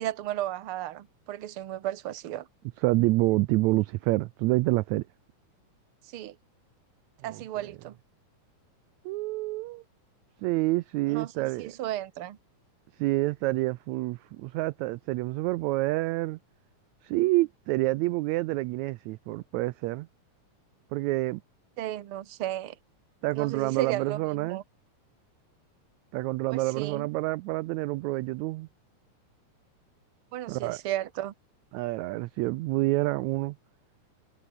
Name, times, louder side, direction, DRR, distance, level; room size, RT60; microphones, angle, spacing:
voice 1, 0.0-2.5 6.0-6.4 7.2-8.0 11.1-12.4 21.8-22.8 23.4-24.6 26.5-27.1 30.3-31.3, right 13 dB, 55° right, 1.7 m, -34 dB
voice 2, 2.8-5.0 7.2-7.4 9.0-9.8 10.4-11.7 13.0-16.4 17.0-20.1 20.9-21.4 23.2-24.6 26.1-28.7 30.5-30.8 31.7-33.6, right 20 dB, 80° right, 1.7 m, -28 dB
omnidirectional pair, 3.6 m